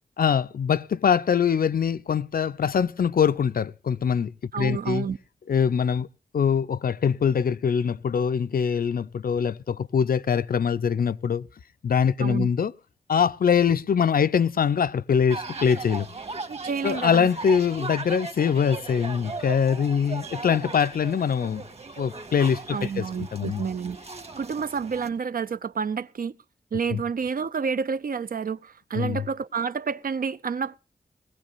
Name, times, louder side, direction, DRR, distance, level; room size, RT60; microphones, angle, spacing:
voice 1, 0.2-4.3 4.6-5.1 5.5-6.1 6.3-11.5 11.8-12.7 13.1-16.1 16.8-21.6 22.0-23.1 23.3-23.6 26.9-27.0 28.9-29.2, left 7 dB, 75° left, 0.6 m, -23 dB
voice 2, 4.5-5.2 12.2-12.5 16.5-17.3 22.7-24.0 24.4-26.4 26.7-30.8, right 6 dB, 70° right, 0.6 m, -29 dB
sound 1, 15.3-25.1, right 3 dB, 45° right, 1.6 m, -38 dB
20.0 x 16.0 x 2.5 m
wide cardioid pair, 70°, 15 cm